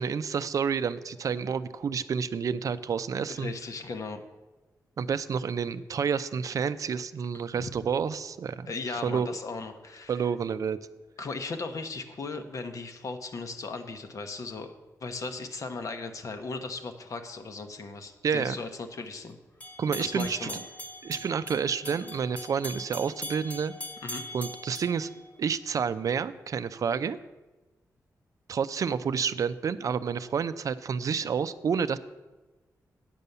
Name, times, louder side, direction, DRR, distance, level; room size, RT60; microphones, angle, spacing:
voice 1, 0.0-3.5 5.0-8.7 9.0-9.3 10.1-10.8 18.2-18.6 19.8-20.5 21.0-23.7 24.3-25.1 25.4-27.2 28.5-32.0, right 6 dB, 60° right, 13 dB, 0.4 m, -29 dB
voice 2, 3.3-4.2 7.6-7.7 8.7-10.2 11.2-14.7 15.0-19.4 20.0-20.6 24.0-24.2, left 3 dB, 60° left, 7 dB, 1.0 m, -37 dB
sound 1, 19.6-25.8, equal, 20° left, 0.8 m, -41 dB
9.1 x 6.9 x 6.7 m, 1.1 s
wide cardioid pair, 135°, 6 cm